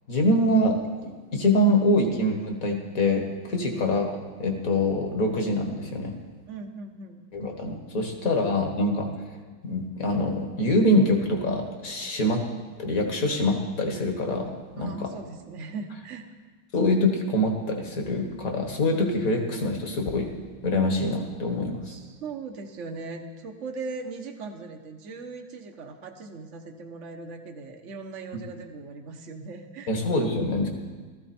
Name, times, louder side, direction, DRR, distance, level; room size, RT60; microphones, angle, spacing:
voice 1, 0.1-4.1 4.4-6.1 7.3-9.1 9.6-12.4 12.8-14.5 14.8-15.1 16.7-20.3 20.6-21.8 29.9-30.7, left 1 dB, 45° left, 3 dB, 1.9 m, -24 dB
voice 2, 6.5-7.2 14.8-16.3 21.8-30.0, right 3 dB, 45° right, 4 dB, 1.2 m, -39 dB
16.0 x 14.0 x 4.4 m, 1.5 s
omnidirectional pair, 2.2 m